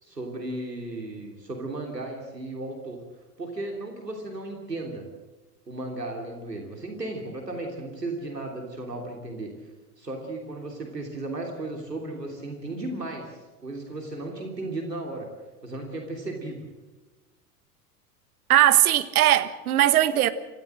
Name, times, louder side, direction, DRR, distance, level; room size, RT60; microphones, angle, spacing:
voice 1, 0.0-3.0 3.4-5.0 5.7-9.5 10.0-15.3 15.6-16.6, right 2 dB, 90° right, 2 dB, 3.2 m, -35 dB
voice 2, 18.5-20.3, right 13 dB, 65° right, 13 dB, 1.4 m, -19 dB
26.0 x 14.5 x 7.7 m, 1.2 s
figure-of-eight pair, 85°, 47 cm